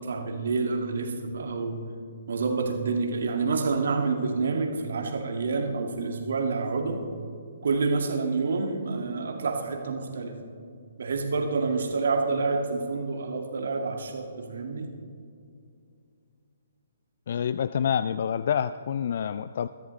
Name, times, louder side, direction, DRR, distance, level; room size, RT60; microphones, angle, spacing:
voice 1, 0.0-1.9 2.3-7.0 7.6-10.4 11.0-14.9, right 4 dB, 60° right, 3 dB, 2.1 m, -28 dB
voice 2, 17.3-19.7, left 8 dB, 50° left, 14 dB, 0.3 m, -27 dB
23.0 x 14.0 x 3.2 m, 2.3 s
figure-of-eight pair, 130°, 0 cm